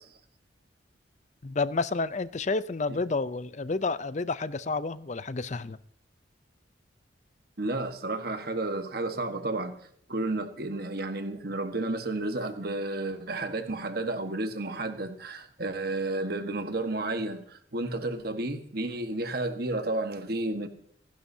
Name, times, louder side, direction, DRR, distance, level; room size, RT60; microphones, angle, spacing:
voice 1, 1.4-5.8, left 3 dB, 40° left, 0.5 m, -30 dB
voice 2, 7.6-9.7 10.1-20.7, right 2 dB, 55° right, 1.4 m, -32 dB
27.0 x 11.5 x 2.8 m
head